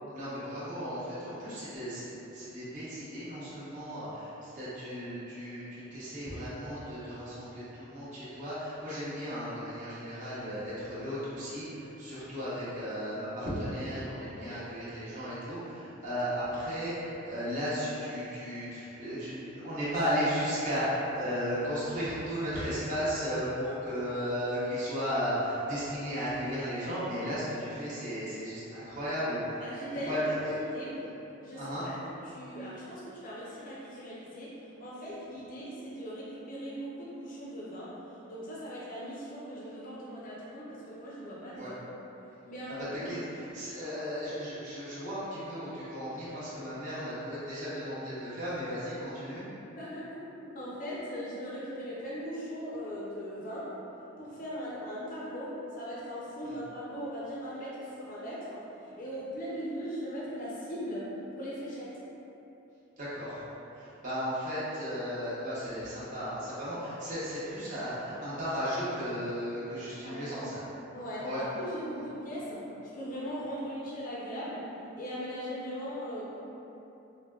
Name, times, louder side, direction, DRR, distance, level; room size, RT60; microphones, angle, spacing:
voice 1, 0.1-29.6 29.9-30.5 31.5-31.9 41.5-41.7 42.7-49.4 63.0-63.4 63.7-70.6 71.2-71.4 71.9-72.0, equal, 40° right, -12 dB, 0.8 m, -35 dB
voice 2, 29.6-30.9 31.4-38.0 38.3-41.8 42.5-43.3 49.6-53.8 54.2-61.1 61.4-62.0 70.0-70.4 70.9-72.6 72.9-74.7 75.0-76.3, equal, 40° left, -7 dB, 0.5 m, -39 dB
4.0 x 2.1 x 2.3 m, 3.0 s
head